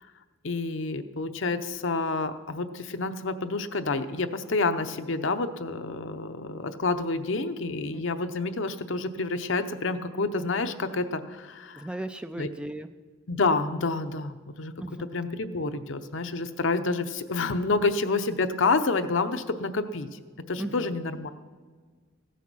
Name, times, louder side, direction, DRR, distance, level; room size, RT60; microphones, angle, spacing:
voice 1, 0.4-11.9 12.4-12.5 13.3-14.7 15.1-20.1 20.5-21.3, left 3 dB, 65° left, 9 dB, 0.7 m, -28 dB
voice 2, 11.8-12.9 14.8-15.1 20.6-20.9, right 1 dB, 5° right, 9 dB, 0.3 m, -36 dB
15.5 x 9.3 x 6.2 m, 1.5 s
head